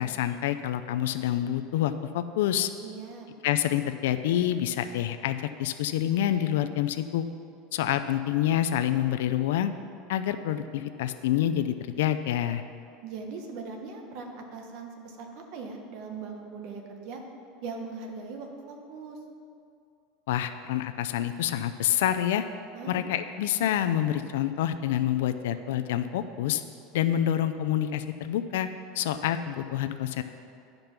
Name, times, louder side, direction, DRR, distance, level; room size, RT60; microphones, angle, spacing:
voice 1, 0.0-2.7 3.4-7.2 7.7-9.7 10.1-12.6 20.3-22.5 22.9-26.6 26.9-28.7 28.9-30.2, left 11 dB, 85° left, 10 dB, 0.4 m, -27 dB
voice 2, 2.8-3.3 13.0-17.2 17.6-19.2 22.7-23.1, right 4 dB, 50° right, 3 dB, 1.2 m, -40 dB
11.0 x 5.2 x 5.9 m, 2.4 s
supercardioid pair, 155°, 0 cm